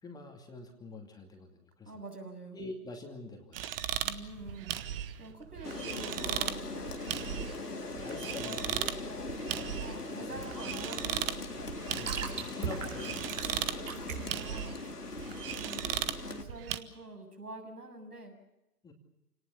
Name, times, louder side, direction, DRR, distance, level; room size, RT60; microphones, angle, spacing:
voice 1, 0.0-1.9 2.5-3.7 8.0-9.4 10.1-10.4 11.9-13.4 18.8-18.9, left 3 dB, 10° left, 3 dB, 2.5 m, -46 dB
voice 2, 1.8-2.6 4.0-4.7 5.2-7.0 9.6-11.2 13.8-14.8 15.6-16.0 16.2-18.4, right 2 dB, 85° right, 4 dB, 7.6 m, -46 dB
sound 1, 3.5-16.8, right 10 dB, 40° right, 1.5 m, -38 dB
Rain, 5.6-16.4, left 3 dB, 90° left, 2.2 m, -41 dB
sound 2, 9.4-16.1, right 7 dB, 55° right, 5.1 m, -42 dB
28.5 x 19.0 x 7.1 m, 0.96 s
figure-of-eight pair, 130°, 45 cm